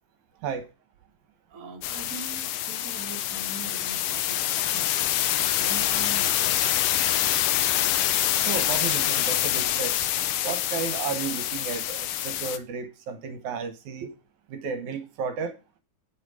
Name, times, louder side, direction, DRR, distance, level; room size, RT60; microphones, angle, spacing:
voice 1, 1.5-7.1, right 4 dB, 35° right, 1.5 m, -43 dB
sound 1, 1.8-12.6, left 12 dB, 90° left, 2.4 m, -26 dB
voice 2, 8.4-10.0 10.4-14.1 14.5-15.5, right 6 dB, 70° right, 2.4 m, -33 dB
8.0 x 6.1 x 4.8 m
omnidirectional pair, 3.6 m